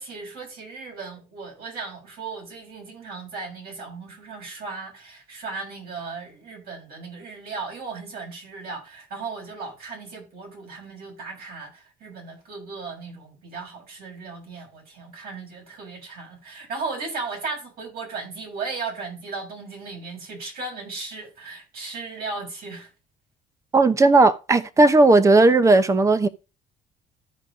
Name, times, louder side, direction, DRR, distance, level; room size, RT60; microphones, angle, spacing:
voice 1, 0.0-22.9, right 4 dB, 65° right, 6.7 m, -36 dB
voice 2, 23.7-26.3, right 2 dB, 20° right, 0.8 m, -16 dB
14.5 x 5.2 x 3.7 m
cardioid pair, 110°, 17 cm